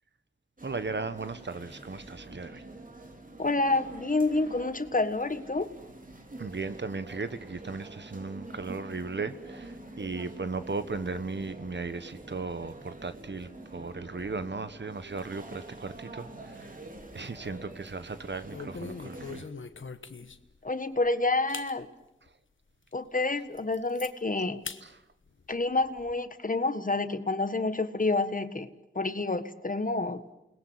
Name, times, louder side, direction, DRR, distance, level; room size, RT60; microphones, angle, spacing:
sound 1, 0.6-19.4, right 2 dB, 45° right, 2.9 m, -46 dB
voice 1, 0.6-2.6 6.4-16.7 17.1-19.5, right 4 dB, 65° right, 12 dB, 1.4 m, -36 dB
voice 2, 3.4-5.7 20.6-21.9 22.9-24.6 25.5-28.7 28.9-30.2, left 3 dB, 45° left, 11 dB, 1.5 m, -28 dB
sound 2, 16.7-17.4 17.7-18.0 18.5-20.6 21.0-21.1 21.5-21.7 22.3-22.4 22.9-23.0 23.3-24.1 24.6-24.8 25.2-26.1, left 4 dB, 90° left, 1.2 m, -42 dB
29.5 x 20.5 x 8.1 m, 0.91 s
wide cardioid pair, 60°, 20 cm